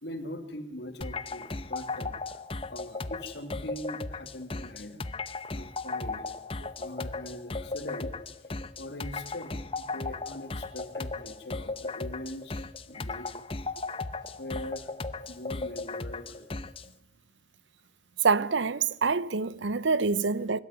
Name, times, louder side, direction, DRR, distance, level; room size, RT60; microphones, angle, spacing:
voice 1, 0.0-2.1 2.7-5.0 5.5-6.3 6.8-8.2 8.8-13.5 14.4-14.9 15.3-16.5, left 1 dB, 75° left, 2.8 m, -41 dB
sound 1, 1.0-16.9, left 3 dB, 30° left, 0.8 m, -36 dB
voice 2, 18.2-20.6, right 4 dB, 90° right, 0.8 m, -26 dB
23.0 x 13.0 x 9.1 m
head